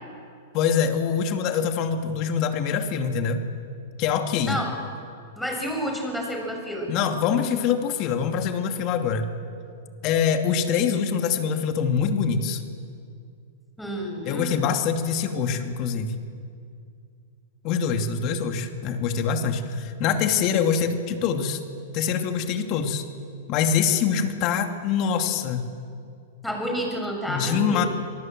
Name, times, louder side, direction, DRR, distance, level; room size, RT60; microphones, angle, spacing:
voice 1, 0.5-3.4 4.0-4.6 6.9-9.3 10.0-12.6 14.2-16.1 17.6-21.6 21.9-23.0 23.5-25.6 27.3-27.8, left 7 dB, 45° left, 6 dB, 2.6 m, -24 dB
voice 2, 5.4-6.9 13.8-14.7 26.4-27.9, equal, 5° left, 1 dB, 6.8 m, -30 dB
27.0 x 19.0 x 7.7 m, 2.3 s
hypercardioid pair, 105°, 0 cm